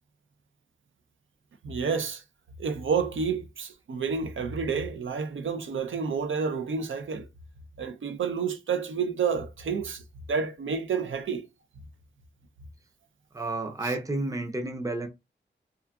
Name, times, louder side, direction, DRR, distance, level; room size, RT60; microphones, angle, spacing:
voice 1, 1.6-2.2 2.6-7.3 7.8-10.0 10.3-11.5 13.8-13.9, right 5 dB, 80° right, 0.5 m, -29 dB
voice 2, 13.3-15.1, right 2 dB, 15° right, 0.5 m, -31 dB
2.6 x 2.4 x 2.3 m
wide cardioid pair, 75°, 20 cm